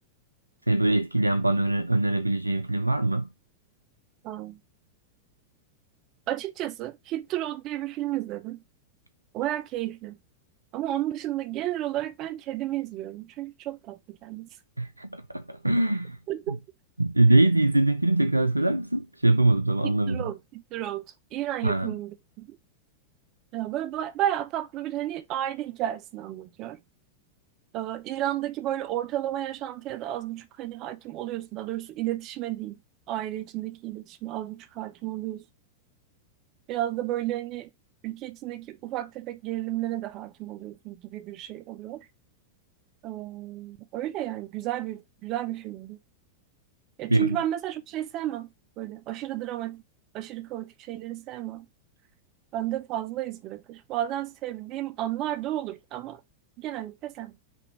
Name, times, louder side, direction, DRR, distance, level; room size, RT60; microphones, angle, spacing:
voice 1, 0.7-3.3 14.8-16.2 16.5-16.6 17.0-20.3 21.6-21.9 47.1-47.4, right 2 dB, 85° right, 0.3 m, -23 dB
voice 2, 4.2-4.6 6.3-8.6 9.3-10.2 10.7-14.5 16.3-16.6 19.8-21.1 21.3-22.6 23.5-26.8 27.7-32.8 33.1-35.4 36.7-37.7 38.0-42.1 43.0-46.0 47.0-49.8 50.1-51.7 52.5-56.2 56.6-57.4, right 13 dB, 40° right, 0.7 m, -32 dB
5.4 x 2.7 x 3.3 m
figure-of-eight pair, 90°, 0 cm